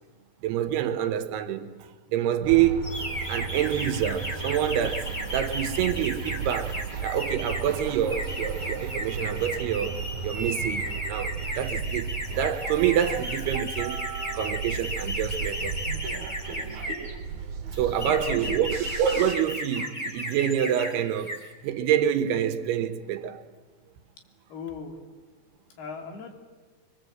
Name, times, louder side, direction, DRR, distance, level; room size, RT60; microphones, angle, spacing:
voice 1, 0.4-1.7 2.1-2.8 3.3-14.0 14.3-15.8 17.7-21.3 21.6-23.4, right 10 dB, 85° right, 3.1 m, -27 dB
sound 1, 2.4-19.3, right 6 dB, 55° right, 2.8 m, -35 dB
sound 2, 2.8-17.1 17.7-20.9 21.2-21.5, left 1 dB, 10° left, 2.0 m, -35 dB
voice 2, 18.0-18.7 24.5-25.0 25.8-26.3, left 5 dB, 75° left, 4.5 m, -38 dB
24.0 x 23.5 x 7.9 m
omnidirectional pair, 4.6 m